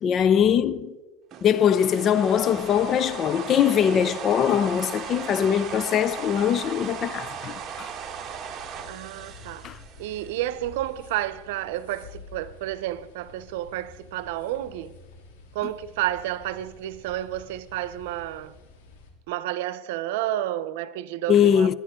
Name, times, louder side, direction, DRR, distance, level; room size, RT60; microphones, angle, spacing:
voice 1, 0.0-1.0 1.4-7.9 9.6-9.8 21.3-21.7, left 8 dB, 40° left, 0.5 m, -22 dB
sound 1, 1.3-10.5, right 7 dB, 35° right, 1.6 m, -37 dB
sound 2, 2.2-19.1, left 3 dB, 90° left, 2.8 m, -50 dB
voice 2, 8.9-9.7 10.0-15.0 15.5-18.5 19.3-21.7, right 13 dB, 80° right, 0.7 m, -31 dB
23.5 x 9.7 x 3.7 m
supercardioid pair, 125°, 0 cm